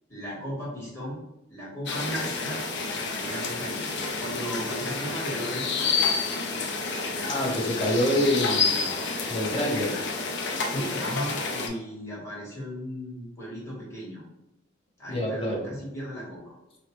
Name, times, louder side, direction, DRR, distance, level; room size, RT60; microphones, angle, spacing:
voice 1, 0.1-1.2 1.5-2.7 3.1-3.9 4.2-5.9 9.6-9.9 10.7-14.2 15.0-16.5, equal, 15° left, -6 dB, 1.4 m, -36 dB
sound 1, 1.9-11.7, left 4 dB, 65° left, 0.5 m, -29 dB
voice 2, 7.3-8.9 9.3-9.9 15.1-15.7, equal, 30° left, -2 dB, 0.9 m, -26 dB
4.3 x 2.1 x 3.0 m, 0.92 s
head